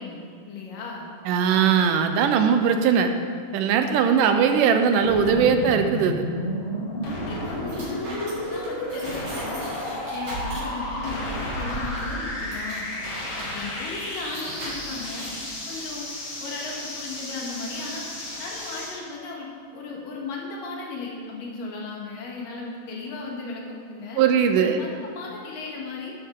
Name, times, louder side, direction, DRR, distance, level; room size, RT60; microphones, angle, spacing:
voice 1, 0.0-1.1 7.0-9.7 10.1-12.9 13.3-15.3 15.7-16.1 16.4-18.0 18.4-19.5 19.7-24.2 24.6-26.1, left 3 dB, 90° left, -2 dB, 3.3 m, -36 dB
voice 2, 1.3-3.1 3.5-6.2 24.2-24.8, right 7 dB, 80° right, 7 dB, 2.3 m, -20 dB
sound 1, 5.0-19.0, left 1 dB, 40° left, 2.7 m, -32 dB
sound 2, 7.0-15.6, right 1 dB, 60° right, 4.7 m, -39 dB
12.0 x 11.5 x 3.7 m, 2.1 s
omnidirectional pair, 3.8 m